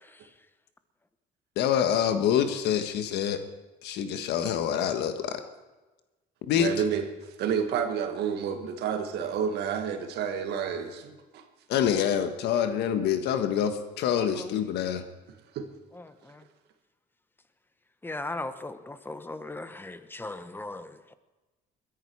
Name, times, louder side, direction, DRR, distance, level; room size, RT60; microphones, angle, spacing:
voice 1, 1.6-3.4 3.8-5.4 6.5-6.7 11.7-15.0, left 9 dB, 80° left, 8 dB, 1.5 m, -26 dB
voice 2, 6.5-7.1 7.4-11.4 15.5-15.7, right 7 dB, 80° right, 6 dB, 1.8 m, -30 dB
voice 3, 14.1-14.7 16.0-16.4 18.0-21.1, left 2 dB, 10° left, 11 dB, 1.0 m, -38 dB
22.0 x 10.5 x 4.7 m, 1.1 s
cardioid pair, 110°, 17 cm